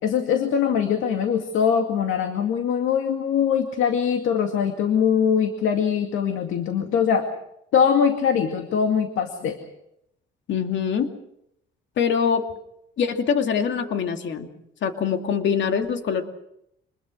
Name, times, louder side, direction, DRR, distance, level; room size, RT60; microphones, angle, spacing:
voice 1, 0.0-7.3 7.7-9.6, left 7 dB, 85° left, 5 dB, 2.2 m, -22 dB
voice 2, 10.5-11.1 12.0-12.4 13.0-14.5 14.8-16.2, left 7 dB, 70° left, 5 dB, 2.5 m, -23 dB
26.0 x 21.0 x 6.4 m, 0.79 s
cardioid pair, 90°, 20 cm